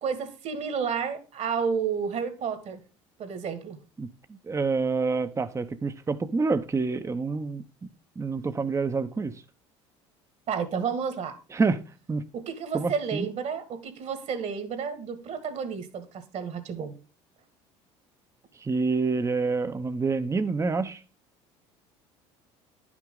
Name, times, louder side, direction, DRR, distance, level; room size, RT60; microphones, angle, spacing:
voice 1, 0.0-2.8 3.2-3.8 10.5-11.3 12.3-16.9, right 6 dB, 50° right, 1.8 m, -31 dB
voice 2, 4.4-7.6 8.2-9.3 11.5-11.8 12.1-12.2 12.7-13.3 18.6-21.0, right 4 dB, 20° right, 0.8 m, -27 dB
10.5 x 6.1 x 3.8 m
hypercardioid pair, 75°, 15 cm